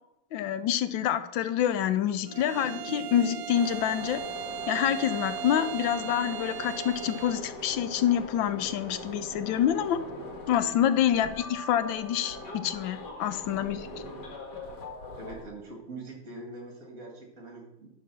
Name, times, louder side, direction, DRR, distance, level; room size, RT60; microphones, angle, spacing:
voice 1, 0.3-4.2 4.7-10.0 10.5-13.9, left 10 dB, 80° left, 12 dB, 1.4 m, -27 dB
sound 1, 0.9-3.9 4.8-6.4, right 1 dB, 30° left, 0.9 m, -45 dB
Bowed string instrument, 2.3-7.5, right 10 dB, 85° right, 0.7 m, -38 dB
sound 2, 3.5-15.5, left 2 dB, 60° left, 2.3 m, -41 dB
voice 2, 15.2-17.9, right 2 dB, 45° right, 1 dB, 2.3 m, -43 dB
11.5 x 4.1 x 6.1 m, 0.88 s
omnidirectional pair, 2.1 m